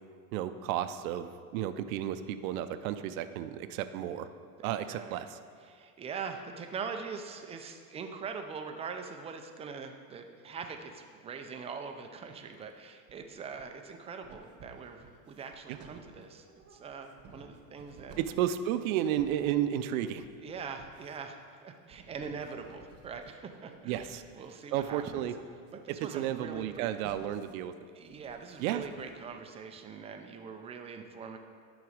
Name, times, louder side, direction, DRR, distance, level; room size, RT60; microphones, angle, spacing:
voice 1, 0.3-4.3 4.6-5.4 15.7-15.8 18.2-20.3 23.9-24.2 24.7-25.3 26.1-27.7 28.6-28.8, right 11 dB, 80° right, 11 dB, 0.6 m, -32 dB
voice 2, 4.6-5.2 5.6-18.1 20.4-25.3 25.7-26.9 27.9-31.4, right 5 dB, 15° right, 5 dB, 0.3 m, -42 dB
sound 1, 12.2-12.8 13.1-13.9 14.2-29.4, right 4 dB, 35° right, 1.0 m, -56 dB
10.5 x 4.1 x 4.8 m, 2.1 s
supercardioid pair, 135°, 41 cm